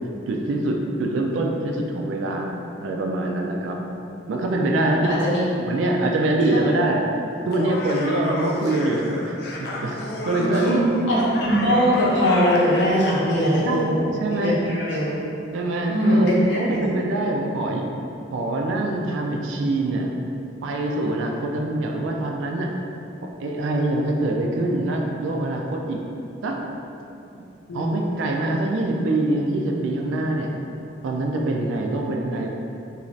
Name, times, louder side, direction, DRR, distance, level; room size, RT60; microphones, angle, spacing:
voice 1, 0.3-2.6 2.8-3.8 4.3-5.2 5.6-7.0 7.5-10.0 10.2-10.9 11.6-11.8 13.6-14.6 15.5-17.9 18.3-20.1 20.6-22.7 23.4-26.0 26.4-26.6 27.7-30.5 31.0-32.5, right 2 dB, 85° right, 1 dB, 0.3 m, -24 dB
voice 2, 5.0-5.4 6.5-6.6 10.4-10.8 11.1-14.0 14.3-15.1 15.9-16.8 27.7-27.9, equal, 75° left, -7 dB, 0.7 m, -21 dB
Laughter, 7.4-13.0, left 1 dB, 55° left, 0.3 m, -31 dB
2.6 x 2.4 x 3.1 m, 2.7 s
head